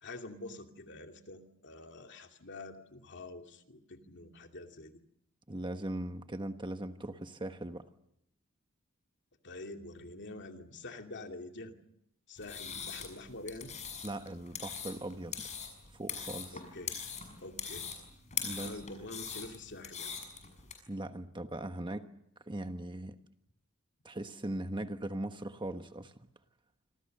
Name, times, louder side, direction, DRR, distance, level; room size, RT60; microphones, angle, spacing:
voice 1, 0.0-5.0 9.4-11.7 12.3-13.8 16.5-17.0 17.4-17.9 18.5-20.1, left 2 dB, 55° left, 4 dB, 2.5 m, -46 dB
voice 2, 5.5-7.8 14.0-15.5 15.9-16.6 18.4-18.7 20.9-22.1 22.5-23.1 24.0-26.3, right 1 dB, 20° right, 8 dB, 1.3 m, -39 dB
sound 1, 12.4-20.7, left 7 dB, 35° left, 6.6 m, -42 dB
27.0 x 26.5 x 6.7 m, 0.75 s
head